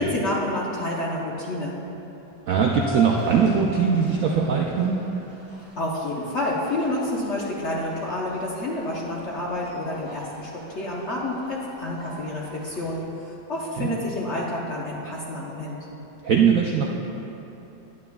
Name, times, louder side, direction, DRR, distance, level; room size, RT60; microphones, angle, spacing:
voice 1, 0.0-1.8 5.8-15.8, left 1 dB, 55° left, -4 dB, 0.8 m, -29 dB
voice 2, 2.5-5.0 13.8-13.9 16.2-16.9, right 6 dB, 75° right, -1 dB, 0.7 m, -21 dB
sound 1, 2.7-13.0, left 1 dB, 20° left, 1.0 m, -41 dB
10.5 x 9.2 x 2.3 m, 3.0 s
omnidirectional pair, 1.9 m